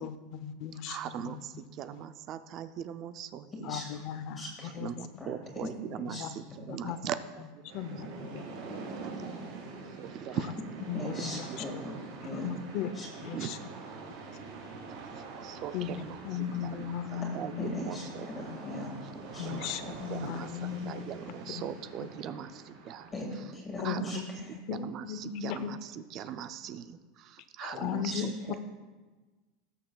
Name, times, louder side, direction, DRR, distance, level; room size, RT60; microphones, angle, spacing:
voice 1, 0.0-1.7 1.9-2.0 3.6-4.4 4.7-4.9 6.1-6.3 6.7-7.0 7.4-7.5 7.7-8.5 10.3-10.6 10.9-11.5 12.4-12.9 13.2-13.6 15.7-17.8 18.2-18.6 19.4-21.0 21.5-21.7 22.0-22.3 23.8-24.2 24.7-25.7 27.6-28.6, left 8 dB, 50° left, 11 dB, 0.6 m, -37 dB
voice 2, 0.9-3.5 4.8-7.6 10.0-10.6 13.3-13.5 15.4-16.2 16.6-18.5 19.4-19.6 20.1-20.5 20.9-23.1 23.8-24.1 24.7-28.3, right 9 dB, 40° right, 11 dB, 0.4 m, -40 dB
voice 3, 4.4-4.7 5.2-5.3 5.6-5.7 6.1-6.2 10.9-12.5 13.0-13.1 17.6-18.1 18.3-18.9 19.3-19.5 23.1-24.5 28.1-28.2, left 1 dB, 15° left, -2 dB, 1.9 m, -39 dB
sound 1, 7.7-23.1, right 4 dB, 80° right, 2.3 m, -45 dB
19.0 x 6.7 x 2.3 m, 1.3 s
supercardioid pair, 155°, 0 cm